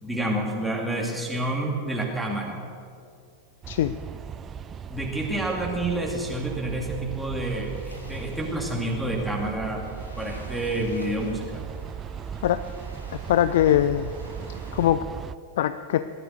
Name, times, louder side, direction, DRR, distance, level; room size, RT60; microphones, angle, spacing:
voice 1, 0.0-2.6 4.9-9.8 10.2-11.6, right 1 dB, ahead, -3 dB, 2.5 m, -29 dB
sound 1, 3.6-15.3, right 8 dB, 25° right, 0.5 m, -38 dB
voice 2, 3.7-4.0 12.4-12.6 13.3-14.1 14.7-15.0 15.6-16.0, left 11 dB, 55° left, 13 dB, 0.4 m, -21 dB
Waves surf, 7.4-14.9, equal, 85° left, 2.1 m, -48 dB
18.0 x 11.5 x 6.8 m, 2.3 s
figure-of-eight pair, 90°, 0 cm